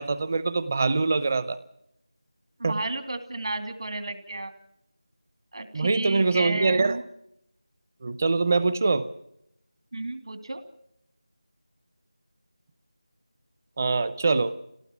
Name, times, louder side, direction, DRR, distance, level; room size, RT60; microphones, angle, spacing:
voice 1, 0.0-1.6 2.6-2.8 5.7-7.0 8.0-9.1 13.8-14.6, right 3 dB, 25° right, 16 dB, 0.7 m, -24 dB
voice 2, 2.6-4.5 5.5-7.0 9.9-10.6, right 2 dB, 60° right, 8 dB, 2.6 m, -32 dB
26.5 x 18.0 x 6.1 m, 0.79 s
figure-of-eight pair, 175°, 3 cm